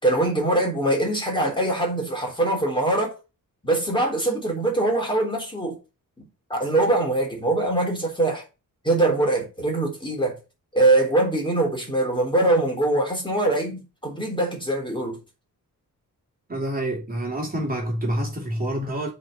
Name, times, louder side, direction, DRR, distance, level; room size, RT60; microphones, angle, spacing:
voice 1, 0.0-3.1 3.6-5.8 6.5-8.4 8.8-10.4 10.7-15.2, right 2 dB, 15° left, 3.5 m, -23 dB
voice 2, 16.5-19.1, right 1 dB, 25° right, 2.9 m, -27 dB
7.6 x 4.5 x 6.7 m
wide cardioid pair, 115°, 34 cm